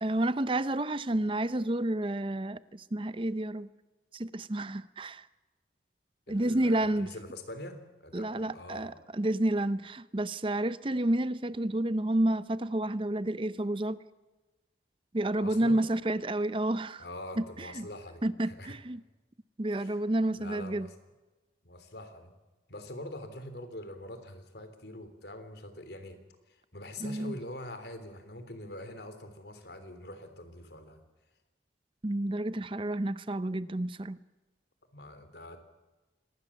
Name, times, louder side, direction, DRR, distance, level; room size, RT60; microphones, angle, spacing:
voice 1, 0.0-3.7 4.1-5.3 6.3-7.1 8.1-14.0 15.1-17.0 17.4-17.9 18.2-19.0 19.6-20.9 27.0-27.4 32.0-34.2, right 1 dB, 30° right, 15 dB, 0.7 m, -30 dB
voice 2, 6.3-8.9 15.4-15.8 17.0-18.7 19.8-20.0 20.4-20.9 21.6-22.3 22.7-26.2 26.5-31.0 34.9-35.6, left 1 dB, 70° left, 9 dB, 3.3 m, -44 dB
25.5 x 20.0 x 7.3 m, 1.1 s
head